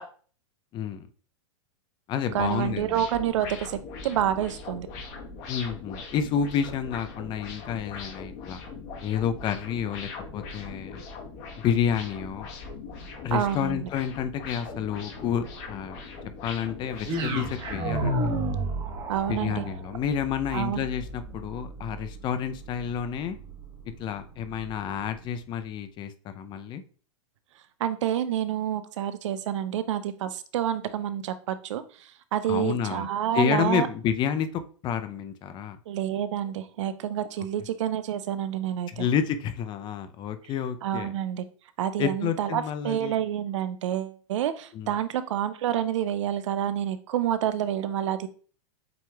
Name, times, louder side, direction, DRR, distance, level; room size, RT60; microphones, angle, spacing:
voice 1, 0.7-1.1 2.1-3.1 5.5-8.6 9.0-11.0 11.6-12.5 13.2-16.0 16.4-18.2 19.3-23.4 24.0-26.8 32.5-33.1 33.3-35.8 38.9-41.1 42.0-43.2 44.7-45.0, left 8 dB, 30° left, 10 dB, 0.5 m, -29 dB
sound 1, 2.3-17.8, left 4 dB, 45° left, 1.7 m, -41 dB
voice 2, 2.3-4.9 13.3-13.9 19.1-19.6 20.5-20.8 27.8-33.9 35.9-39.1 40.8-41.4 41.8-48.3, right 10 dB, 70° right, 13 dB, 0.6 m, -28 dB
sound 2, 17.0-25.2, right 2 dB, 30° right, 1.3 m, -33 dB
7.7 x 3.0 x 2.3 m, 0.41 s
hypercardioid pair, 130°, 16 cm